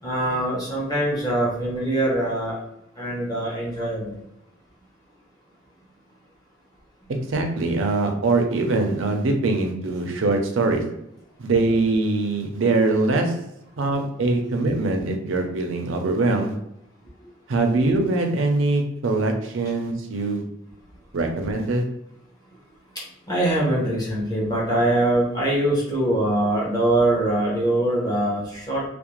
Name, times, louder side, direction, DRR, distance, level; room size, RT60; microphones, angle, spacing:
voice 1, 0.0-2.6 3.0-4.2 23.3-28.8, right 1 dB, 20° left, -5 dB, 0.7 m, -23 dB
voice 2, 7.3-11.0 11.4-13.5 13.8-16.6 17.5-20.5 21.1-21.9, right 2 dB, 80° right, 4 dB, 0.5 m, -22 dB
2.4 x 2.1 x 2.9 m, 0.79 s
head